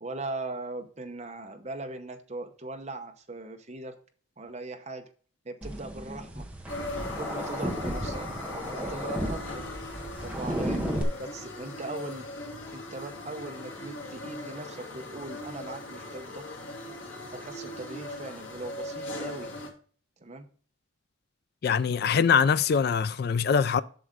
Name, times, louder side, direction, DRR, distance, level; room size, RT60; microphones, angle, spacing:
voice 1, 0.0-4.0 4.4-5.1 5.4-6.5 7.2-8.3 8.8-9.7 10.2-10.8 11.2-12.3 12.7-16.5 17.3-19.5 20.2-20.5, right 2 dB, 35° right, 0.9 m, -39 dB
sound 1, 5.6-11.0, equal, 5° right, 0.9 m, -34 dB
sound 2, 6.7-19.7, left 1 dB, 90° left, 2.3 m, -39 dB
voice 2, 21.6-23.8, left 6 dB, 50° left, 0.3 m, -23 dB
7.8 x 6.4 x 3.9 m
head